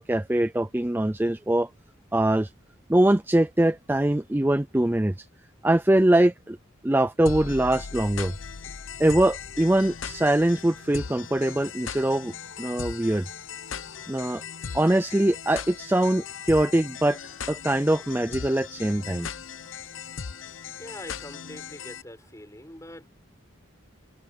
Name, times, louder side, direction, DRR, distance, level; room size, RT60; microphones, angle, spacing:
voice 1, 0.0-1.7 2.1-2.5 2.9-5.3 5.6-6.6 6.8-8.3 9.0-13.3 14.1-14.4 14.7-17.2 17.5-19.3, right 1 dB, 10° right, 0.4 m, -23 dB
sound 1, 7.3-22.0, left 6 dB, 85° left, 0.8 m, -38 dB
voice 2, 20.8-23.1, left 1 dB, 15° left, 6.5 m, -43 dB
head